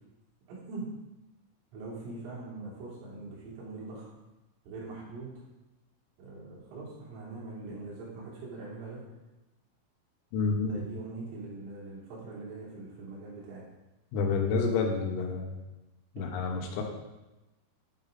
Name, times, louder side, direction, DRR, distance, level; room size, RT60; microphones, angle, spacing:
voice 1, 0.5-0.9 1.7-4.1 4.7-5.5 6.2-9.1 10.6-13.6, right 3 dB, 85° right, -6 dB, 5.5 m, -42 dB
voice 2, 10.3-10.8 14.1-15.6 16.2-16.8, left 4 dB, 90° left, 2 dB, 3.9 m, -29 dB
10.0 x 5.8 x 5.1 m, 1.0 s
omnidirectional pair, 5.8 m